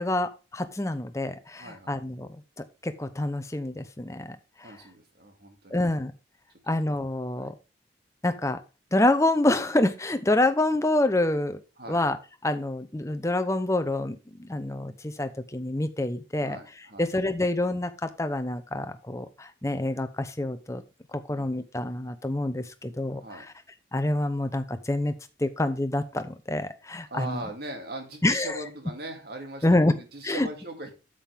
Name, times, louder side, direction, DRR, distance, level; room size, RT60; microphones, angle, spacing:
voice 1, 0.0-2.3 2.8-4.8 5.7-6.1 6.7-7.5 8.2-8.6 8.9-11.6 11.9-12.2 12.4-20.8 21.1-23.5 23.9-25.1 25.4-27.4 28.2-28.6 29.6-29.9 30.2-30.5, left 1 dB, 15° left, 10 dB, 0.7 m, -27 dB
voice 2, 1.6-2.0 4.6-5.8 7.3-7.5 11.8-12.0 16.4-17.1 21.3-21.5 23.1-23.5 27.1-30.9, right 2 dB, 55° right, 4 dB, 2.3 m, -40 dB
8.8 x 7.6 x 3.5 m, 0.31 s
head